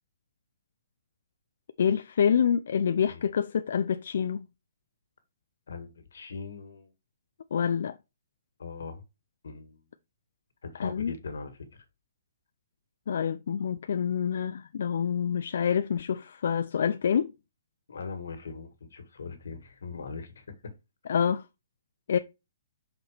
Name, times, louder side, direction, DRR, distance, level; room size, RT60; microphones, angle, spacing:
voice 1, 1.8-4.5 7.5-8.0 10.8-11.1 13.1-17.3 21.1-21.4 22.1-22.2, left 7 dB, 60° left, 0.4 m, -27 dB
voice 2, 5.7-6.9 8.6-9.0 9.4-9.8 10.6-11.8 17.9-20.4, left 4 dB, 85° left, 1.8 m, -40 dB
5.9 x 4.2 x 5.0 m
hypercardioid pair, 170°, 0 cm